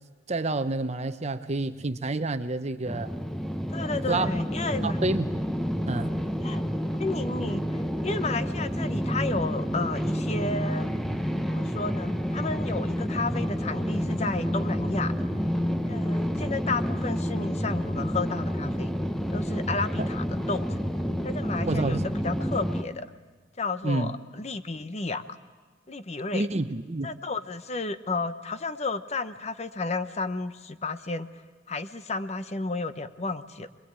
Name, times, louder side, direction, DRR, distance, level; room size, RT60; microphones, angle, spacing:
voice 1, 0.3-3.1 4.1-4.3 4.8-5.3 5.9-6.1 10.5-10.6 20.0-20.1 21.6-22.0 23.8-24.1 26.3-27.1, right 2 dB, 35° right, 0.9 m, -28 dB
sound 1, 2.9-22.8, equal, ahead, 1.0 m, -29 dB
voice 2, 3.7-5.0 6.4-6.6 7.0-10.9 11.4-15.1 15.9-18.9 19.3-20.8 21.2-23.1 23.6-25.2 25.9-26.5 27.0-31.3 31.7-33.7, left 3 dB, 35° left, 0.9 m, -32 dB
25.5 x 21.5 x 8.9 m
head